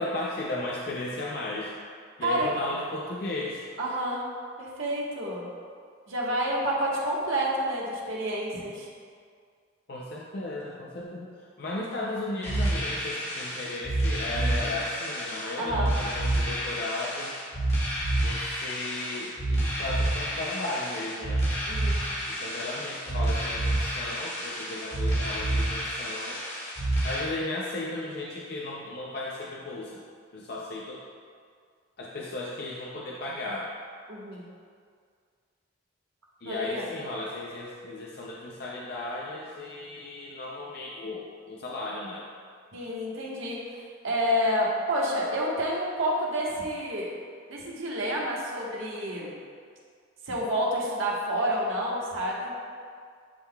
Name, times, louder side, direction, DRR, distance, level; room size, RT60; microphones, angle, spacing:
voice 1, 0.0-1.7 2.2-3.6 9.9-17.3 18.2-21.5 22.2-26.4 27.0-30.0 30.3-31.0 32.0-33.7 36.4-42.2, left 2 dB, 50° left, -3 dB, 0.5 m, -35 dB
voice 2, 3.8-4.3 4.6-5.5 6.1-8.9 14.3-14.7 15.6-15.9 21.7-22.0 34.1-34.5 36.4-36.8 42.7-47.1 47.5-49.4 50.3-52.7, equal, 85° right, -4 dB, 1.3 m, -29 dB
sound 1, 12.4-27.2, right 1 dB, 35° left, 1.4 m, -29 dB
11.0 x 3.8 x 2.3 m, 2.1 s
head